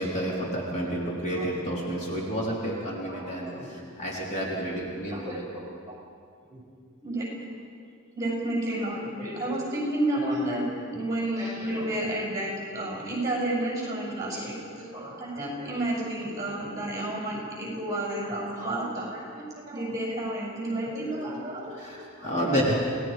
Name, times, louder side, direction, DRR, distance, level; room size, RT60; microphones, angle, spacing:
voice 1, 0.0-5.4 21.8-22.7, equal, 35° left, -4 dB, 3.6 m, -30 dB
voice 2, 3.1-3.7 4.3-4.4 4.6-4.8 5.1-6.0 6.5-6.6 7.0-7.3 8.1-10.6 10.9-21.7 22.2-22.4, right 1 dB, 15° right, -4 dB, 6.5 m, -31 dB
28.5 x 18.0 x 5.1 m, 2.3 s
head